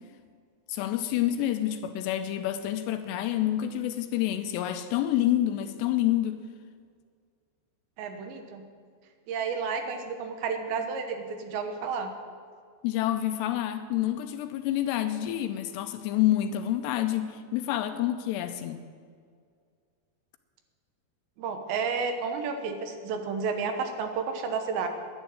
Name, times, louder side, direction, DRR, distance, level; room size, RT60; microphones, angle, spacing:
voice 1, 0.7-6.4 12.8-18.8, left 12 dB, 85° left, 8 dB, 2.7 m, -28 dB
voice 2, 8.0-8.6 9.3-12.1 21.4-24.9, right 5 dB, 85° right, 5 dB, 3.3 m, -31 dB
11.0 x 10.5 x 7.6 m, 2.1 s
omnidirectional pair, 5.2 m